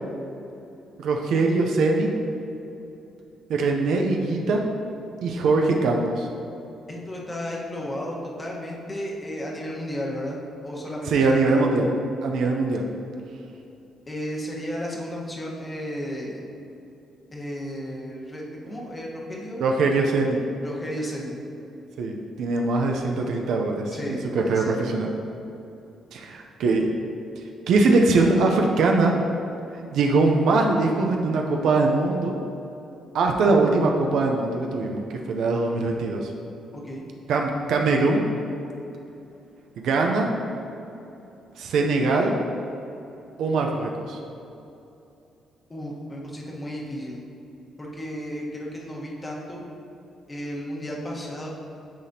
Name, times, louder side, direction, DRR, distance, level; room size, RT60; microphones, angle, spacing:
voice 1, 1.0-2.1 3.5-4.6 5.2-6.3 11.1-11.9 12.2-12.9 19.6-20.4 22.0-25.1 26.1-26.9 27.7-29.1 29.9-32.3 33.1-35.0 35.3-36.3 37.3-38.2 39.8-40.3 41.6-42.3 43.4-44.2, right 3 dB, 75° right, 1 dB, 0.5 m, -22 dB
voice 2, 6.9-11.5 14.1-16.4 17.3-19.6 20.6-21.3 23.9-24.8 36.7-37.0 45.7-47.2 47.8-49.6 50.3-51.5, equal, 20° left, -3 dB, 1.2 m, -33 dB
10.5 x 4.1 x 2.8 m, 2.8 s
cardioid pair, 90°, 0 cm